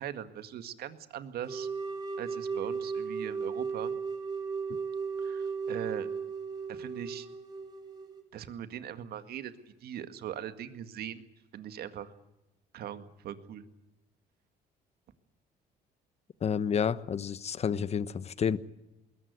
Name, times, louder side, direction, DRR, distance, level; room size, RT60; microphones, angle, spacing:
voice 1, 0.0-1.7 2.2-3.9 5.2-6.1 6.7-7.3 8.3-9.5 9.8-11.2 11.5-12.1 12.7-13.6, right 10 dB, 65° right, 2.0 m, -40 dB
sound 1, 1.5-8.2, right 5 dB, 25° right, 4.8 m, -35 dB
voice 2, 16.4-18.6, left 7 dB, 40° left, 1.1 m, -30 dB
21.0 x 18.5 x 9.5 m
cardioid pair, 110°, 17 cm